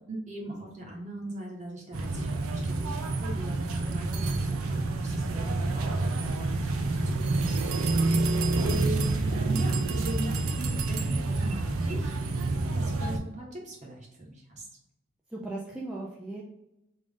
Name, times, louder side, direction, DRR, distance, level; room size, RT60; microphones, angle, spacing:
voice 1, 0.1-6.9 7.3-14.7, right 2 dB, 35° right, -2 dB, 1.0 m, -40 dB
sound 1, 1.9-13.2, right 2 dB, 85° right, 0.5 m, -28 dB
voice 2, 15.3-16.4, right 2 dB, 5° right, -5 dB, 0.3 m, -37 dB
3.5 x 2.5 x 3.6 m, 0.91 s
head